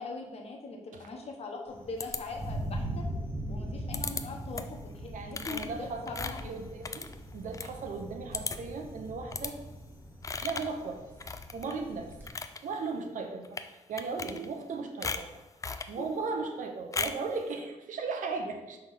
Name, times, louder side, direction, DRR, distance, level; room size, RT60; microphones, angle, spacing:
voice 1, 0.0-3.1 3.5-6.5 16.0-16.1, left 3 dB, 55° left, 1 dB, 1.2 m, -41 dB
Thunder, 1.7-12.3, right 1 dB, 15° right, 1.3 m, -41 dB
sound 1, 2.0-2.7 3.9-4.2 4.5-4.8 5.3-7.7 8.0-8.1 8.3-8.8 9.3-9.5 10.2-10.8 11.2-11.8 12.1-12.6 13.4-13.7 14.0-14.7 15.0-15.9 16.9-17.3, left 4 dB, 25° left, 0.4 m, -37 dB
voice 2, 5.1-9.6 10.4-11.0 11.5-12.1 12.6-15.3 15.9-18.8, right 4 dB, 85° right, 5 dB, 0.9 m, -37 dB
6.1 x 3.4 x 5.6 m, 1.0 s
wide cardioid pair, 130°, 13 cm